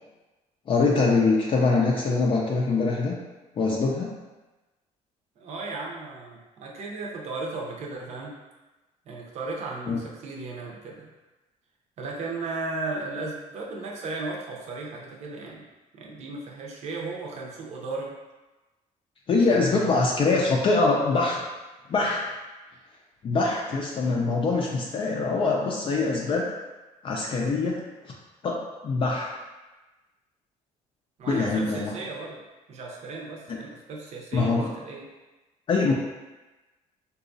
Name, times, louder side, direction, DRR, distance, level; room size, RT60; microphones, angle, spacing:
voice 1, 0.7-3.2 3.6-4.2 9.9-10.0 19.3-21.4 21.9-22.2 23.2-26.5 27.0-28.1 28.4-29.3 31.3-31.9 34.3-34.7 35.7-35.9, left 3 dB, 40° left, -2 dB, 0.4 m, -23 dB
voice 2, 5.4-8.3 9.1-11.1 12.0-15.6 15.9-18.2 19.3-20.2 31.2-32.4 32.7-35.1, right 3 dB, 55° right, -2 dB, 0.7 m, -35 dB
3.8 x 2.3 x 2.6 m, 1.1 s
cardioid pair, 130°, 14 cm